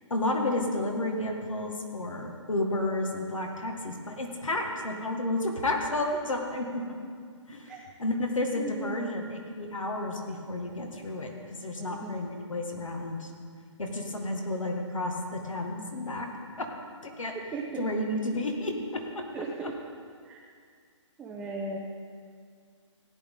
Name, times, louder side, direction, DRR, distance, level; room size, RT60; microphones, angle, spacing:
voice 1, 0.1-7.0 7.5-7.7 8.0-13.3 13.8-16.3 16.6-16.7 17.0-17.3 17.8-19.3 19.6-19.7, left 2 dB, 90° left, 2 dB, 2.0 m, -31 dB
voice 2, 8.6-9.0 11.8-12.1 17.5-17.9 19.3-19.8 20.2-20.4 21.2-21.8, right 3 dB, 5° right, -2 dB, 0.4 m, -37 dB
16.5 x 8.9 x 3.8 m, 2.1 s
hypercardioid pair, 150°, 16 cm